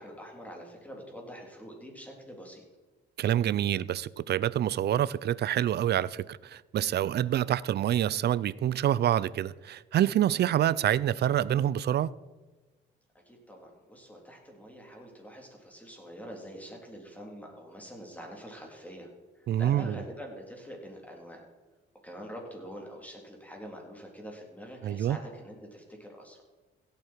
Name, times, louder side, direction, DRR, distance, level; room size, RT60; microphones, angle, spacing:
voice 1, 0.0-2.6 13.3-19.1 19.4-21.4 22.0-26.4, equal, 5° left, 3.6 m, -45 dB
voice 2, 3.2-12.1 19.5-20.0 24.8-25.2, right 11 dB, 55° right, 0.5 m, -27 dB
16.0 x 8.5 x 4.6 m
cardioid pair, 90°, 20 cm